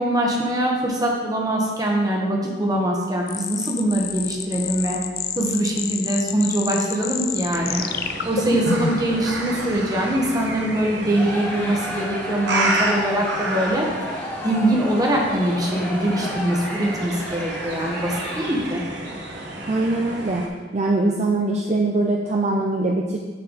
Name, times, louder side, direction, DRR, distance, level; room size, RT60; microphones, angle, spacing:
voice 1, 0.0-5.0 5.4-7.8 8.2-18.8, right 1 dB, 20° right, -1 dB, 1.2 m, -23 dB
sound 1, 3.3-9.1, left 7 dB, 55° left, 0.4 m, -28 dB
sound 2, 7.5-20.5, right 2 dB, 85° right, 1.0 m, -30 dB
voice 2, 8.5-8.8 19.7-20.5 20.7-23.2, right 2 dB, 40° right, 0 dB, 0.5 m, -22 dB
Crowd, 11.1-18.8, equal, 10° left, 1.4 m, -33 dB
8.8 x 4.4 x 4.0 m, 1.4 s
head